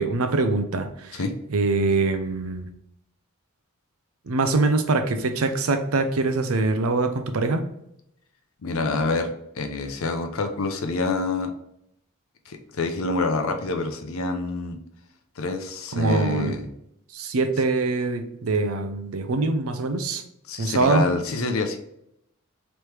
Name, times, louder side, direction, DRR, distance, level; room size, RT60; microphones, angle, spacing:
voice 1, 0.0-1.2 1.5-2.7 4.3-7.6 15.9-16.6 17.1-20.2 20.6-21.0, right 3 dB, 75° right, 8 dB, 0.6 m, -23 dB
voice 2, 8.6-9.3 9.5-11.5 12.5-14.8 15.4-16.7 20.5-21.8, left 3 dB, 75° left, 6 dB, 0.6 m, -27 dB
3.3 x 3.0 x 4.5 m, 0.78 s
head